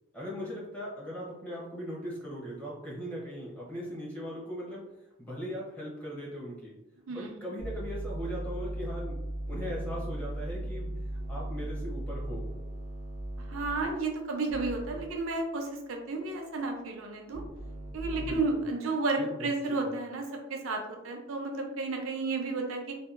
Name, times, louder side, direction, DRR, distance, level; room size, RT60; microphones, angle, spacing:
voice 1, 0.1-4.8 5.2-6.8 7.1-9.2 9.5-10.9 11.3-12.5 18.2-18.7 19.2-19.9, equal, 5° left, -6 dB, 0.7 m, -39 dB
voice 2, 7.1-7.5 13.5-17.4 17.9-22.9, right 3 dB, 85° right, 3 dB, 0.5 m, -32 dB
sound 1, 7.6-13.9 14.5-15.0 17.3-18.3, right 1 dB, 70° left, 0.6 m, -37 dB
2.7 x 2.2 x 2.4 m, 0.94 s
head